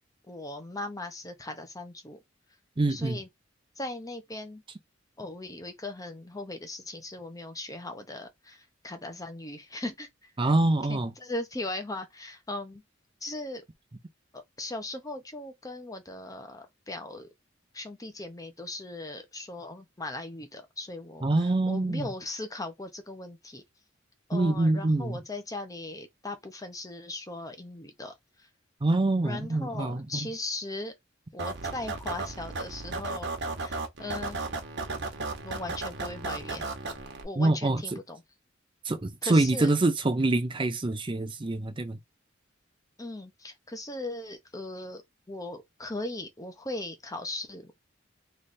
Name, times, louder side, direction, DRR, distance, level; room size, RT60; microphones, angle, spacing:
voice 1, 0.3-2.2 2.9-3.3 3.8-4.6 5.2-10.1 10.4-10.5 10.9-12.8 13.2-13.6 14.3-17.3 17.7-23.6 24.3-28.1 29.2-30.9 31.3-33.3 33.6-34.4 35.4-36.7 37.2-38.2 39.2-39.7 43.0-45.0 45.3-47.7, left 2 dB, 20° left, 0.9 m, -38 dB
voice 2, 2.8-3.2 10.4-11.1 21.2-22.1 24.3-25.2 28.8-30.3 37.4-38.0 38.8-42.0, right 2 dB, 25° right, 0.5 m, -25 dB
sound 1, 31.4-37.2, right 3 dB, 65° right, 1.2 m, -35 dB
3.3 x 3.3 x 4.2 m
head